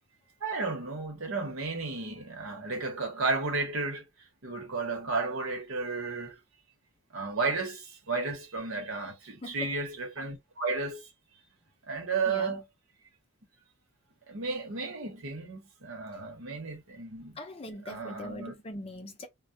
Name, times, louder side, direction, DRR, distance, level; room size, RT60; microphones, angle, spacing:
voice 1, 0.4-4.0 4.4-6.4 7.1-11.1 11.9-12.6 14.3-17.4 17.9-18.5, right 3 dB, 85° right, 1.0 m, -33 dB
voice 2, 9.4-9.7 12.3-12.6 17.3-19.3, left 1 dB, 30° left, 0.5 m, -42 dB
2.3 x 2.1 x 2.6 m
head